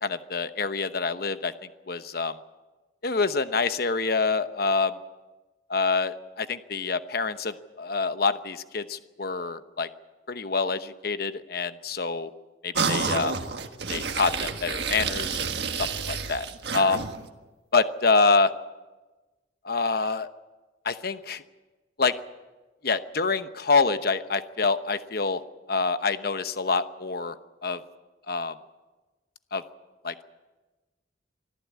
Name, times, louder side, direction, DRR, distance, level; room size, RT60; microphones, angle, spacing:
voice 1, 0.0-2.4 3.0-5.0 5.7-9.9 10.3-12.3 12.6-13.3 13.9-16.5 16.7-17.1 17.7-18.5 19.6-20.3 20.8-21.4 22.0-22.1 22.8-25.4 25.7-27.4 27.6-27.8 28.3-28.5 29.5-29.6 30.0-30.3, left 4 dB, 55° left, 11 dB, 1.0 m, -26 dB
sound 1, 12.7-17.3, right 5 dB, 60° right, 1.5 m, -29 dB
24.5 x 14.0 x 8.5 m, 1.2 s
head